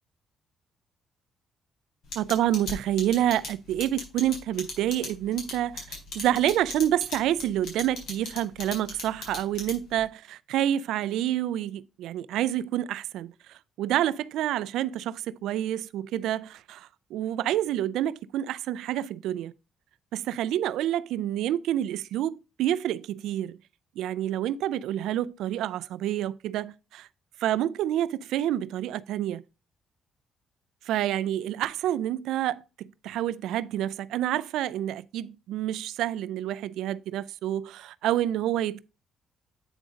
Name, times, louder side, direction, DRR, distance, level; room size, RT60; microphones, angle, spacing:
sound 1, 2.1-10.0, left 3 dB, 65° left, 4.2 m, -36 dB
voice 1, 2.2-19.5 20.1-23.6 24.0-27.1 27.4-29.4 30.9-38.8, right 12 dB, 85° right, 0.3 m, -28 dB
8.8 x 3.7 x 5.0 m
cardioid pair, 90°, 0 cm